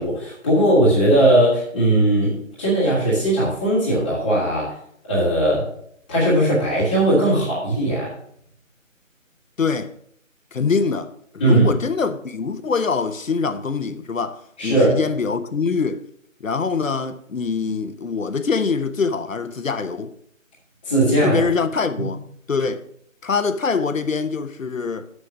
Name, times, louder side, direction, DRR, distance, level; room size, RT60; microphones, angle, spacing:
voice 1, 0.0-4.7 5.1-5.7 6.1-8.1 11.4-11.7 14.6-15.0 20.8-21.4 22.0-22.1, right 1 dB, 5° left, 1.3 m, -18 dB
voice 2, 9.6-9.9 10.5-16.1 16.4-20.1 21.2-22.2 22.5-22.9 23.2-25.1, left 5 dB, 75° left, 1.0 m, -24 dB
6.7 x 6.5 x 6.2 m
figure-of-eight pair, 165°, 40 cm